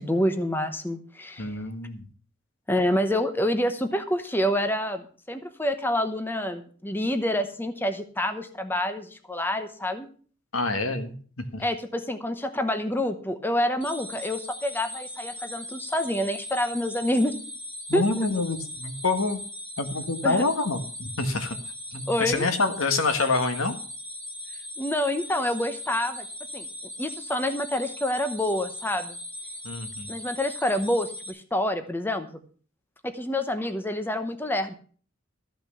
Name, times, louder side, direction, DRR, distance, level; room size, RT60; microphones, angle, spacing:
voice 1, 0.0-1.5 2.7-10.1 11.6-17.4 17.9-18.2 20.2-20.4 22.1-22.4 24.8-26.3 26.5-26.7 27.0-29.1 30.1-32.3 33.0-34.7, left 1 dB, 10° left, 8 dB, 0.9 m, -27 dB
voice 2, 1.4-2.0 10.5-11.6 17.9-19.4 19.8-21.6 21.9-23.7 29.6-30.1, left 3 dB, 85° left, 8 dB, 1.6 m, -27 dB
sound 1, 13.8-31.3, left 1 dB, 25° left, 4.2 m, -39 dB
13.5 x 5.8 x 7.0 m, 0.43 s
head